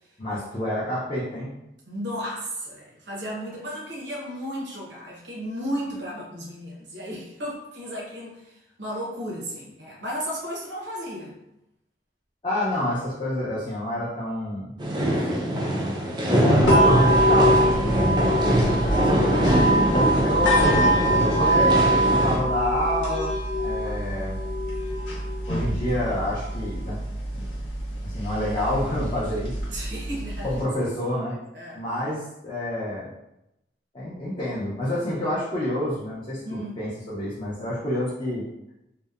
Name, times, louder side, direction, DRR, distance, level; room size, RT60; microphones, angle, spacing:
voice 1, 0.2-1.5 12.4-14.7 15.0-18.2 18.8-19.5 19.9-24.4 25.5-27.0 27.3-27.5 28.0-29.6 30.4-31.4 31.7-33.1 33.9-38.4, left 1 dB, 30° left, -8 dB, 0.5 m, -28 dB
voice 2, 1.9-11.3 18.1-18.2 29.7-30.6 31.3-31.8 36.4-36.8, equal, 75° right, -4 dB, 0.7 m, -34 dB
sound 1, 14.8-22.4, equal, 25° right, 0.3 m, -22 dB
sound 2, 16.6-30.6, right 1 dB, 90° left, 0.9 m, -24 dB
2.7 x 2.0 x 2.3 m, 0.85 s
head